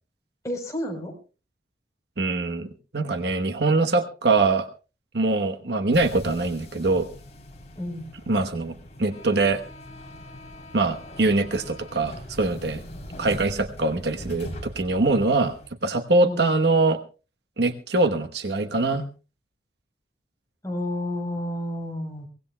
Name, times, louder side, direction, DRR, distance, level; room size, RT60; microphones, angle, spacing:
voice 1, 0.4-1.1 7.8-8.1 16.2-16.5 20.6-22.3, left 1 dB, 20° left, 1 dB, 4.0 m, -30 dB
voice 2, 2.2-4.7 5.1-7.1 8.3-9.6 10.7-12.8 13.2-15.5 15.8-17.0 17.6-19.1, right 3 dB, 65° right, 7 dB, 1.1 m, -23 dB
sound 1, 5.9-15.7, left 1 dB, 40° left, 3.4 m, -41 dB
24.0 x 18.0 x 2.2 m, 0.32 s
head